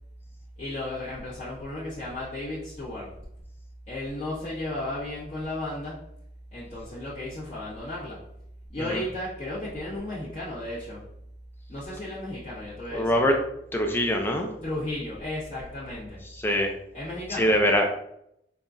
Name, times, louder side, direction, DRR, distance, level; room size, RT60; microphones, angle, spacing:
voice 1, 0.6-3.2 3.9-6.1 6.5-8.3 8.7-11.1 11.7-13.2 14.6-16.2 16.9-17.6, left 1 dB, 40° left, -12 dB, 1.2 m, -34 dB
voice 2, 12.9-13.3 13.7-14.5 16.4-16.7 17.4-17.9, equal, 10° left, 2 dB, 0.4 m, -22 dB
5.6 x 2.3 x 2.5 m, 0.77 s
head